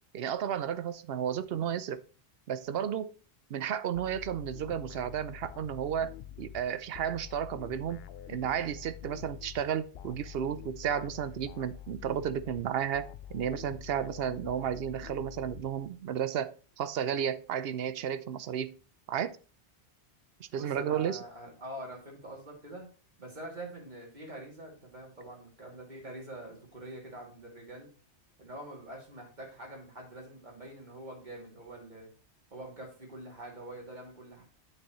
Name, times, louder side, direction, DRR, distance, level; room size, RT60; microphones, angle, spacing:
voice 1, 0.1-2.0 2.5-3.2 3.5-18.8 19.1-19.4 20.4-21.2, right 9 dB, 65° right, 0.8 m, -33 dB
sound 1, 3.9-16.1, left 11 dB, 65° left, 0.8 m, -47 dB
voice 2, 20.6-22.9 23.2-27.9 28.4-32.1 32.5-34.4, right 1 dB, 40° right, 2.9 m, -45 dB
8.9 x 6.5 x 3.1 m
omnidirectional pair, 1.1 m